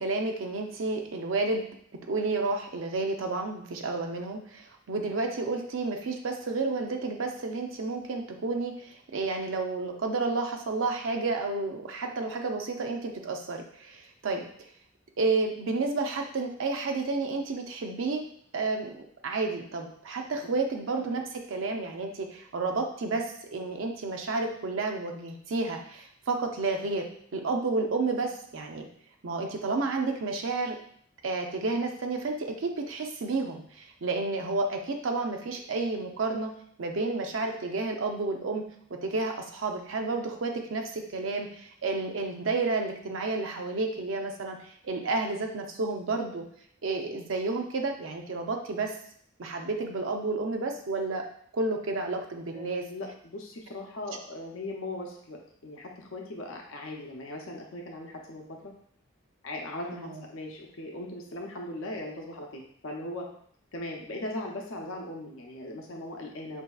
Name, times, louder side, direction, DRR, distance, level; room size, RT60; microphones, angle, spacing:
voice 1, 0.0-1.6 2.1-14.4 15.2-18.2 18.5-27.1 27.3-28.9 29.2-30.8 31.2-36.5 36.8-38.6 38.9-46.4 46.8-49.0 49.4-51.2 51.5-52.8 59.9-60.2, right 3 dB, 65° right, 3 dB, 0.5 m, -31 dB
voice 2, 52.5-58.7 59.4-63.3 63.7-66.6, left 1 dB, 75° left, 1 dB, 0.6 m, -39 dB
5.1 x 2.7 x 2.3 m, 0.63 s
head